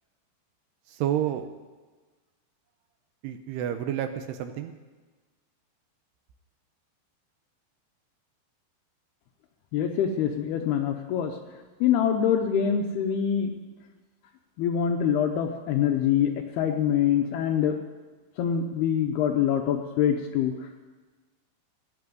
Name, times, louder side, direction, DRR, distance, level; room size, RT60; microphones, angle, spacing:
voice 1, 0.9-1.5 3.2-4.7, right 10 dB, 85° right, 8 dB, 2.4 m, -29 dB
voice 2, 9.7-11.4 11.8-13.5 14.6-17.8 18.4-20.9, left 8 dB, 80° left, 4 dB, 2.3 m, -25 dB
16.5 x 8.5 x 9.4 m, 1.3 s
omnidirectional pair, 5.5 m